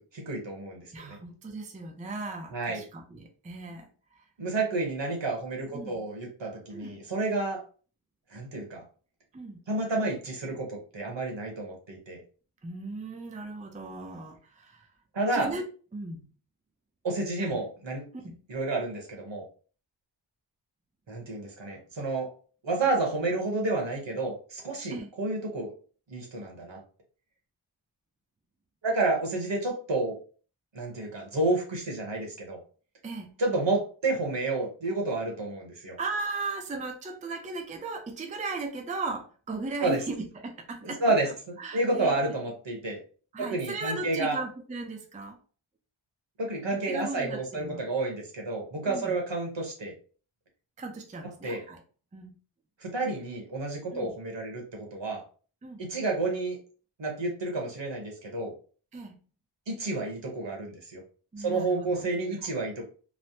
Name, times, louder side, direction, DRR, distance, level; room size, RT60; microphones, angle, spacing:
voice 1, 0.0-1.2 2.5-2.8 4.4-7.6 8.3-8.8 9.7-12.2 15.1-15.5 17.0-18.0 18.5-19.4 21.1-22.3 22.6-25.7 26.1-26.8 28.8-30.2 30.7-32.6 33.4-36.0 39.8-40.0 40.8-41.3 41.7-43.0 43.4-44.4 46.4-49.9 51.4-51.6 52.8-55.2 55.8-56.6 57.0-58.5 59.7-61.0 61.4-62.8, right 2 dB, 65° right, 1 dB, 1.1 m, -30 dB
voice 2, 0.9-3.9 4.2-4.3 5.7-6.0 6.7-7.0 9.3-9.6 12.6-14.9 15.3-15.6 15.9-16.3 17.4-17.6 18.1-18.4 24.9-25.1 33.0-33.3 36.0-41.2 41.6-42.1 43.3-45.4 46.9-47.9 48.9-49.1 50.8-51.8 52.1-52.3 53.9-54.1 55.6-55.8 58.9-59.2 61.3-62.0 62.4-62.5, right 3 dB, 15° right, 3 dB, 0.4 m, -37 dB
3.2 x 2.0 x 2.7 m, 0.39 s
wide cardioid pair, 110°, 48 cm